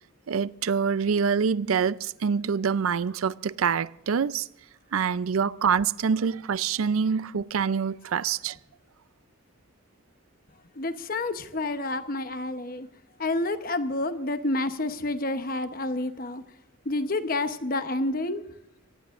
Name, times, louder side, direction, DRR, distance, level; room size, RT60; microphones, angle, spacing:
voice 1, 0.3-4.5 4.9-8.6, right 6 dB, 85° right, 0.5 m, -26 dB
voice 2, 10.8-12.9 13.2-16.4 16.8-18.4, left 2 dB, 45° left, 0.9 m, -29 dB
24.0 x 17.0 x 2.5 m
head